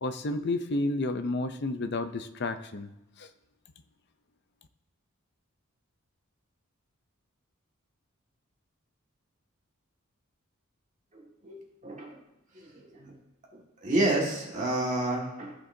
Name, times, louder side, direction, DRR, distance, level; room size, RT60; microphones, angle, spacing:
voice 1, 0.0-2.9 3.2-3.3, left 2 dB, 50° left, 10 dB, 0.6 m, -31 dB
voice 2, 11.1-12.2 12.5-13.2 13.5-15.5, right 1 dB, 35° right, -2 dB, 1.9 m, -30 dB
15.0 x 5.8 x 2.7 m, 0.91 s
head